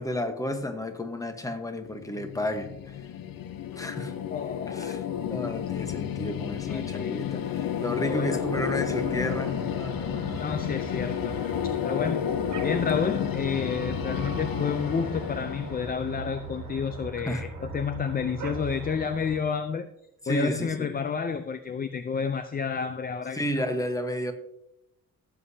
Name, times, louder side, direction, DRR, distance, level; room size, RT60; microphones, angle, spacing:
voice 1, 0.0-3.0 3.7-4.1 4.7-10.6 17.2-17.4 20.2-20.9 23.3-24.3, equal, 10° left, 7 dB, 1.2 m, -32 dB
sound 1, 1.8-16.9, left 9 dB, 80° left, 0.7 m, -32 dB
voice 2, 4.3-5.0 6.7-7.2 8.0-8.4 10.4-19.9 20.3-23.7, left 6 dB, 25° left, 10 dB, 0.5 m, -30 dB
sound 2, 8.3-19.4, right 4 dB, 60° right, 1.6 m, -40 dB
16.5 x 8.1 x 2.8 m, 0.82 s
cardioid pair, 130°, 34 cm